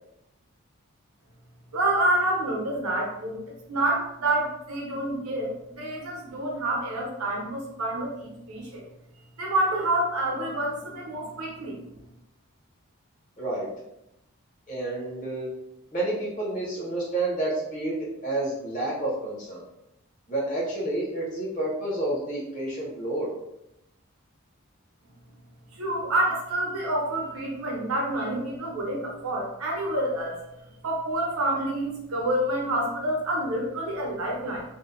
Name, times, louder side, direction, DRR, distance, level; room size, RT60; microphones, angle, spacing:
voice 1, 1.7-3.4 3.7-8.8 9.4-11.8 25.8-30.4 30.8-34.6, right 1 dB, 80° right, -1 dB, 0.7 m, -28 dB
voice 2, 13.4-13.7 14.7-15.5 15.9-19.6 20.3-23.3, right 2 dB, 35° left, -4 dB, 0.7 m, -29 dB
2.6 x 2.1 x 2.4 m, 0.85 s
head